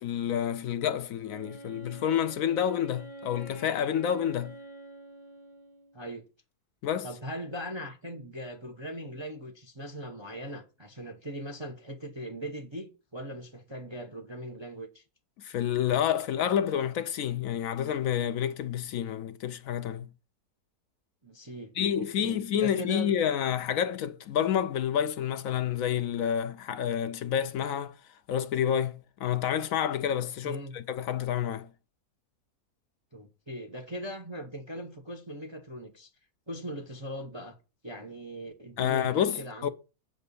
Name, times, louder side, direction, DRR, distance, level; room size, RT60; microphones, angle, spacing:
voice 1, 0.0-4.5 6.8-7.1 15.4-20.1 21.8-28.0 28.3-31.7 38.8-39.7, left 9 dB, 70° left, 0.9 m, -29 dB
Wind instrument woodwind instrument, 1.3-6.1, right 1 dB, 20° left, 0.9 m, -47 dB
voice 2, 7.0-15.0 21.2-23.2 30.4-30.8 33.1-36.1 36.5-37.6 37.8-39.7, equal, 25° right, 0.7 m, -40 dB
7.5 x 4.3 x 6.8 m
omnidirectional pair, 1.6 m